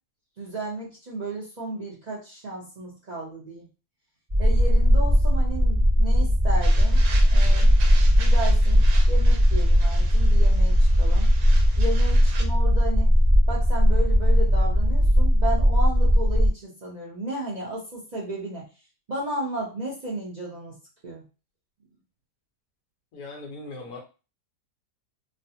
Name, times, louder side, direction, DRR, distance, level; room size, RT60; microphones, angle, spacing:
voice 1, 0.4-3.7 4.4-7.7 8.2-11.3 11.8-13.1 13.5-18.7 19.1-21.2, right 1 dB, 50° right, -5 dB, 0.5 m, -34 dB
sound 1, 4.3-16.5, equal, 15° right, 0.9 m, -18 dB
sound 2, 6.6-12.5, right 4 dB, 75° right, 1.1 m, -41 dB
voice 2, 23.1-24.0, left 2 dB, 70° left, 0 dB, 1.4 m, -39 dB
3.2 x 2.1 x 2.7 m, 0.32 s
omnidirectional pair, 1.7 m